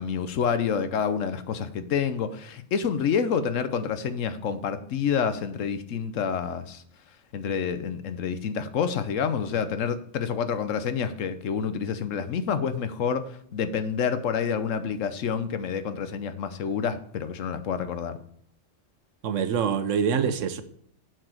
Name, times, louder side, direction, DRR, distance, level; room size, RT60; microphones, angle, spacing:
voice 1, 0.0-6.8 7.3-18.1, left 7 dB, 85° left, 1.1 m, -28 dB
voice 2, 19.2-20.6, right 7 dB, 80° right, 1.1 m, -25 dB
7.5 x 4.8 x 6.3 m
omnidirectional pair, 1.3 m